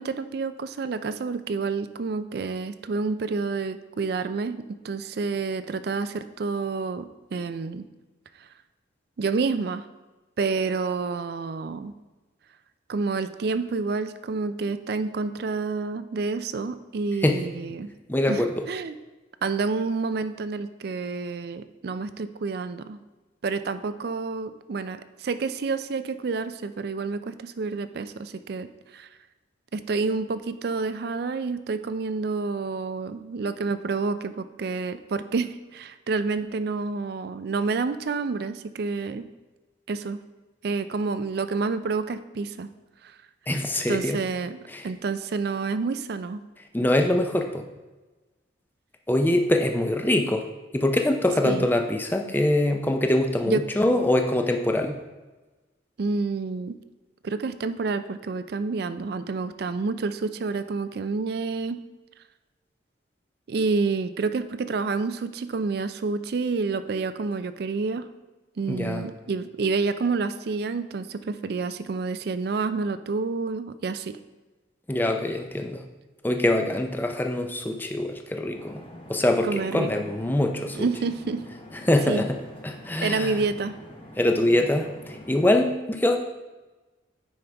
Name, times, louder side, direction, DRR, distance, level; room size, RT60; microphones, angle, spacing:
voice 1, 0.0-7.9 8.4-8.5 9.2-9.9 10.4-11.9 12.9-17.9 18.3-18.9 19.4-23.0 23.4-29.1 29.7-39.3 39.9-40.2 40.6-42.7 43.0-43.2 43.9-44.6 44.8-46.4 51.4-51.7 53.5-53.6 56.0-56.8 57.2-61.8 63.5-68.1 68.6-74.2 79.4-79.9 80.7-81.4 82.1-82.3 83.0-83.7, right 4 dB, 55° right, 12 dB, 0.4 m, -29 dB
voice 2, 18.1-18.5 43.5-44.2 44.7-44.9 46.7-47.6 49.1-50.4 50.7-55.0 68.7-69.0 74.9-75.8 76.2-78.8 79.1-80.8 81.9-83.3 84.2-86.2, left 1 dB, 10° left, 4 dB, 0.5 m, -24 dB
sound 1, 78.5-85.5, left 1 dB, 30° left, 1.0 m, -45 dB
9.2 x 5.4 x 3.4 m, 1.2 s
head